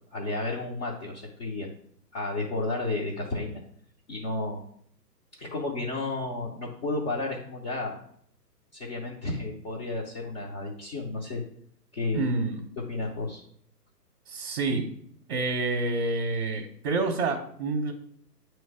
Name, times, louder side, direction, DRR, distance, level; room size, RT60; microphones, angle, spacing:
voice 1, 0.1-1.7 2.1-3.6 4.1-4.6 5.3-8.0 8.7-11.4 11.9-12.3 12.9-13.4, left 2 dB, 30° left, -4 dB, 0.9 m, -32 dB
voice 2, 12.1-12.6 14.3-14.8 15.3-17.9, right 3 dB, 35° right, 1 dB, 0.8 m, -28 dB
9.2 x 3.1 x 4.8 m, 0.65 s
figure-of-eight pair, 120°, 49 cm